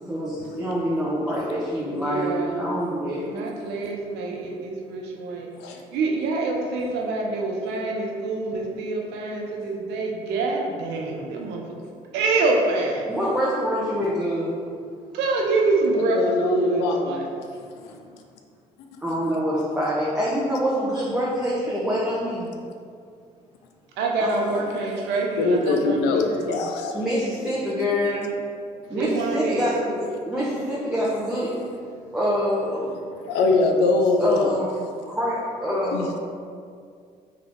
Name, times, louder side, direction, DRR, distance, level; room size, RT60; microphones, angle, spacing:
voice 1, 0.0-3.2 13.1-14.6 19.0-22.5 24.2-24.7 26.9-28.3 28.9-31.5 32.1-33.0 34.2-34.8 35.1-36.1, equal, 5° right, -8 dB, 1.0 m, -26 dB
voice 2, 1.9-2.7 3.2-5.5 5.9-11.6 12.1-13.0 15.1-17.2 24.0-26.7 28.9-29.6, right 3 dB, 75° right, 0 dB, 0.7 m, -26 dB
voice 3, 15.9-17.4 17.8-17.9 25.4-27.3 33.3-34.5 35.7-36.2, left 3 dB, 75° left, 3 dB, 0.4 m, -23 dB
3.6 x 3.3 x 3.7 m, 2.2 s
hypercardioid pair, 55°, 18 cm